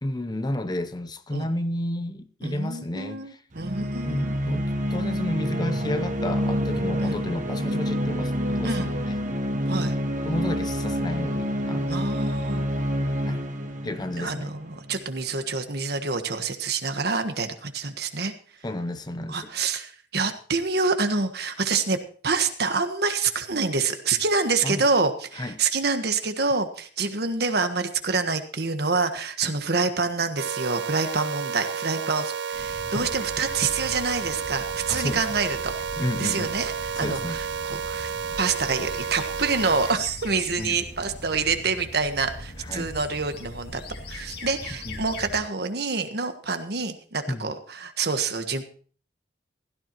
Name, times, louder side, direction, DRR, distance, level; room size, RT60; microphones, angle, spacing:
voice 1, 0.0-3.4 3.8-8.9 10.2-12.1 13.3-13.4 13.8-14.5 18.6-19.5 24.6-24.9 25.4-25.6 29.4-29.5 32.9-33.1 34.9-35.2 36.0-36.6 37.0-37.4 40.6-40.8 42.6-42.9 44.8-45.0 47.3-47.5, left 1 dB, 25° left, 0.8 m, -31 dB
voice 2, 2.4-4.4 7.0-7.2 8.6-8.9 9.7-9.9 11.9-12.6 14.2-18.3 19.3-22.0 22.2-35.7 36.2-38.1 38.4-43.8 44.1-48.6, right 4 dB, 65° right, 1.4 m, -27 dB
sound 1, 3.5-15.1, equal, 45° right, 1.1 m, -28 dB
sound 2, 30.4-39.9, right 6 dB, 90° right, 0.5 m, -31 dB
sound 3, 32.5-45.4, left 1 dB, 65° left, 2.4 m, -40 dB
16.0 x 13.5 x 3.0 m
head